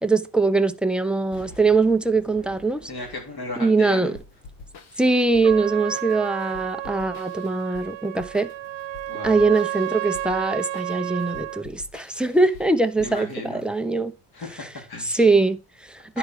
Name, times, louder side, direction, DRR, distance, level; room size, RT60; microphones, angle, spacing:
voice 1, 0.0-2.9 3.6-4.1 5.0-8.5 9.2-14.1 15.1-16.2, right 3 dB, ahead, 0.6 m, -22 dB
Explosion, 1.3-5.2 5.7-5.8, equal, 25° left, 5.5 m, -49 dB
voice 2, 2.9-4.2 9.1-9.4 13.0-13.6 14.3-15.3 16.1-16.2, left 2 dB, 50° left, 3.5 m, -35 dB
sound 1, 4.1-13.7, left 3 dB, 80° left, 1.5 m, -47 dB
Trumpet, 5.4-11.6, right 14 dB, 70° right, 0.5 m, -31 dB
10.5 x 4.8 x 4.9 m
cardioid pair, 115°, 49 cm